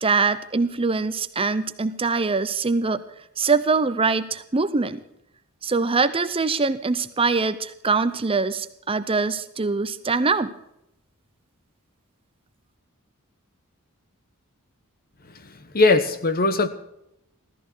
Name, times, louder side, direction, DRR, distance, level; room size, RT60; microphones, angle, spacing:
voice 1, 0.0-3.0 3.4-5.0 5.6-10.5, right 4 dB, 25° right, 0.6 m, -23 dB
voice 2, 15.3-16.7, left 3 dB, 40° left, 1.2 m, -21 dB
16.0 x 14.0 x 4.5 m
head